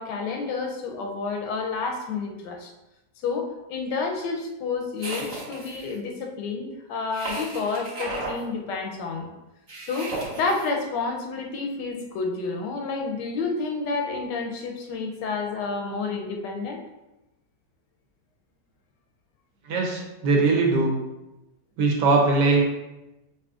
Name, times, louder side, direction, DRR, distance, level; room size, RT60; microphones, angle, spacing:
voice 1, 0.0-2.7 3.2-9.3 9.9-16.8, left 4 dB, 85° left, 2 dB, 1.3 m, -30 dB
sound 1, 5.0-5.9 7.1-8.4 9.7-10.7, right 2 dB, 25° right, 1.0 m, -34 dB
voice 2, 19.7-21.0 21.8-22.6, right 3 dB, 80° right, 0 dB, 1.4 m, -21 dB
5.0 x 2.8 x 2.4 m, 0.97 s
omnidirectional pair, 1.8 m